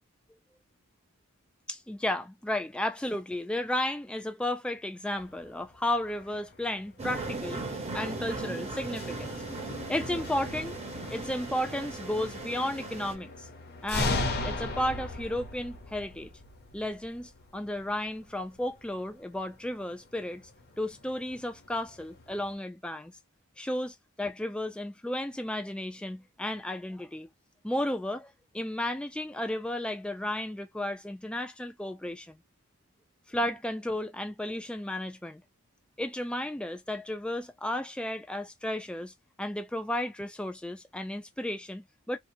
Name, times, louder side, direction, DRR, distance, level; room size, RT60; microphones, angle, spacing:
voice 1, 1.7-9.4 9.9-10.7 11.1-13.5 13.8-16.3 16.7-20.5 20.8-23.1 23.6-27.3 27.6-32.4 33.3-35.4 36.0-42.2, left 1 dB, 5° left, 0.3 m, -33 dB
sound 1, 5.1-22.6, left 2 dB, 50° left, 0.7 m, -39 dB
sound 2, 7.0-13.1, right 3 dB, 30° right, 0.8 m, -38 dB
2.8 x 2.0 x 2.6 m
head